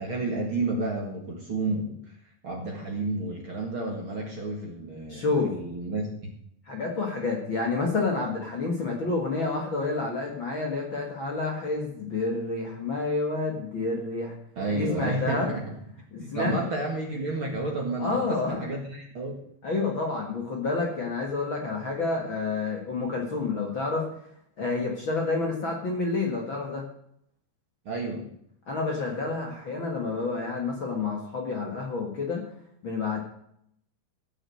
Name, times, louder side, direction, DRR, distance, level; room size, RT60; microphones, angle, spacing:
voice 1, 0.0-2.2 2.4-6.3 14.6-15.6 16.2-19.4 27.9-28.3, right 2 dB, 45° right, 0 dB, 2.1 m, -31 dB
voice 2, 5.1-5.5 6.7-14.4 14.7-15.5 16.1-16.5 18.0-18.6 19.6-24.1 24.6-26.8 28.7-32.4 32.8-33.2, left 3 dB, 40° left, 0 dB, 2.0 m, -29 dB
15.0 x 6.4 x 7.8 m, 0.70 s
omnidirectional pair, 4.2 m